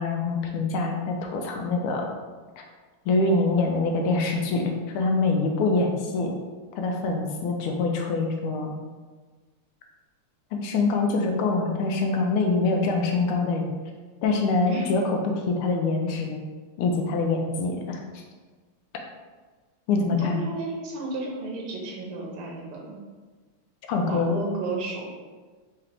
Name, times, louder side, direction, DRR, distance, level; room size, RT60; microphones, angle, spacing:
voice 1, 0.0-2.1 2.6-2.7 3.1-6.4 6.8-8.7 10.5-13.7 14.2-15.2 15.5-16.4 16.8-18.2 19.9-20.4 23.9-24.3, left 3 dB, 80° left, 2 dB, 1.5 m, -25 dB
voice 2, 20.0-23.0 24.0-25.1, right 3 dB, 85° right, -1 dB, 1.8 m, -33 dB
4.8 x 2.9 x 3.3 m, 1.4 s
omnidirectional pair, 2.4 m